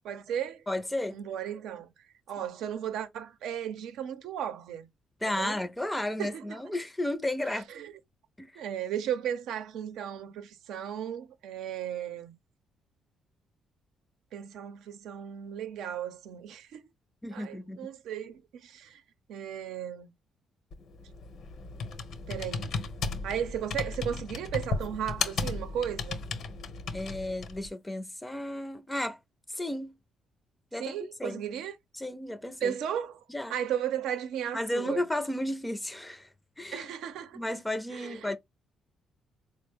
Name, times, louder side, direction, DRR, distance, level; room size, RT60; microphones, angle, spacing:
voice 1, 0.1-0.6 1.1-1.9 2.3-4.9 5.3-5.6 6.2-6.6 7.4-7.9 8.6-12.4 14.3-16.8 17.3-19.0 19.3-20.1 22.3-22.9 23.2-26.2 30.8-31.8 32.6-33.2 33.5-35.0 36.7-37.4 37.9-38.3, right 9 dB, 85° right, 0.6 m, -35 dB
voice 2, 0.7-1.2 5.2-7.7 8.4-8.5 17.2-17.8 26.9-29.2 29.5-29.9 30.7-31.4 31.9-32.7 33.3-33.6 34.5-36.3 36.6-36.9 37.3-38.4, left 1 dB, 10° left, 0.5 m, -33 dB
Computer keyboard, 20.7-27.7, left 4 dB, 70° left, 0.9 m, -35 dB
4.2 x 2.1 x 3.4 m
cardioid pair, 90°, 0 cm